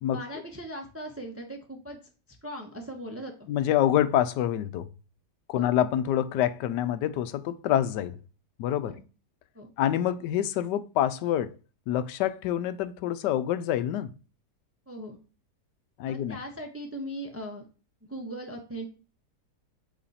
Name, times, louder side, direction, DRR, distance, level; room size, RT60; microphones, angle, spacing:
voice 1, 0.1-2.0 2.4-3.5 5.5-5.7 8.8-9.0 9.5-9.7 14.9-15.2 16.1-17.6 18.1-18.9, equal, 15° right, 0.6 m, -39 dB
voice 2, 3.5-4.9 5.5-8.2 8.6-8.9 9.8-11.5 11.9-14.1 16.0-16.4, left 11 dB, 90° left, 1.2 m, -26 dB
8.2 x 3.2 x 4.1 m
omnidirectional pair, 1.8 m